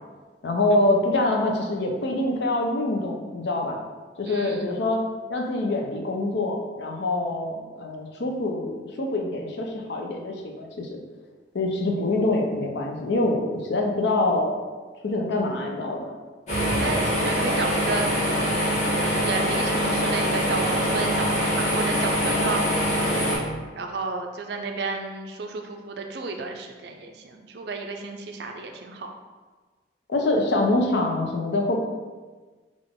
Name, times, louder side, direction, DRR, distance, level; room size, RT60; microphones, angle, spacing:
voice 1, 0.4-3.8 4.2-5.0 5.3-10.9 11.5-14.6 15.0-16.1 30.1-31.8, left 2 dB, 65° left, 1 dB, 0.5 m, -25 dB
voice 2, 4.3-4.7 16.7-18.1 19.0-22.7 23.8-29.1, right 3 dB, 60° right, 4 dB, 0.4 m, -32 dB
sound 1, 16.5-23.4, equal, 40° left, 1.2 m, -24 dB
3.7 x 2.4 x 3.6 m, 1.3 s
head